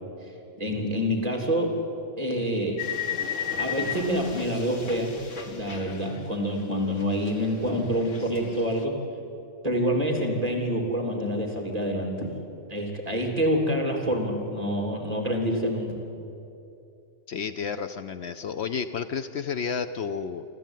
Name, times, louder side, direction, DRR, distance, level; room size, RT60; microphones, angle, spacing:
voice 1, 0.6-1.8 2.2-2.9 3.6-5.2 5.5-9.0 9.6-12.3 12.7-15.9, equal, 30° right, 2 dB, 3.5 m, -27 dB
sound 1, 2.8-6.7 7.0-8.8, left 8 dB, 85° left, 1.9 m, -35 dB
voice 2, 17.3-20.4, left 6 dB, 65° left, 11 dB, 0.9 m, -31 dB
27.5 x 13.0 x 9.2 m, 2.8 s
omnidirectional pair, 1.3 m